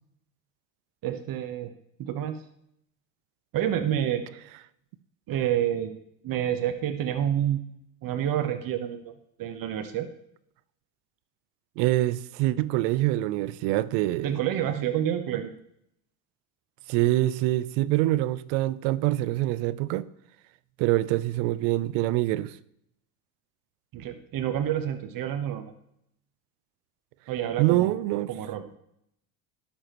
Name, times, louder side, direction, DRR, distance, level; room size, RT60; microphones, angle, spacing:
voice 1, 1.0-1.7 2.0-2.4 3.5-4.2 5.3-6.0 6.2-7.6 8.0-9.1 9.4-10.1 14.2-15.5 23.9-25.7 27.3-28.0 28.3-28.7, right 10 dB, 50° right, 1.1 m, -28 dB
voice 2, 11.8-14.4 16.9-20.1 20.8-22.6 27.6-28.3, right 16 dB, 65° right, 0.8 m, -25 dB
18.5 x 7.2 x 3.1 m
hypercardioid pair, 85°, 45 cm